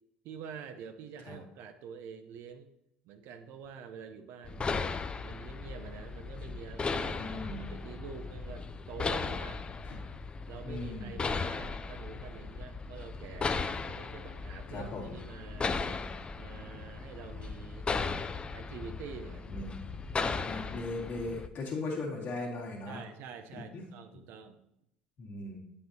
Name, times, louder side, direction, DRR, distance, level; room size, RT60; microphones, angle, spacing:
voice 1, 0.2-2.7 3.0-4.7 5.2-9.6 10.5-15.8 16.4-17.9 18.5-19.5 22.9-24.6, right 6 dB, 55° right, 8 dB, 0.7 m, -47 dB
sound 1, 4.4-21.5, left 4 dB, 25° left, 0.4 m, -37 dB
voice 2, 7.2-7.7 9.8-10.0 10.6-11.1 14.7-15.2 19.5-19.7 20.4-23.0 23.7-23.8 25.2-25.6, left 2 dB, 45° left, -2 dB, 2.1 m, -38 dB
8.7 x 5.6 x 2.8 m, 0.80 s
figure-of-eight pair, 65°, 4 cm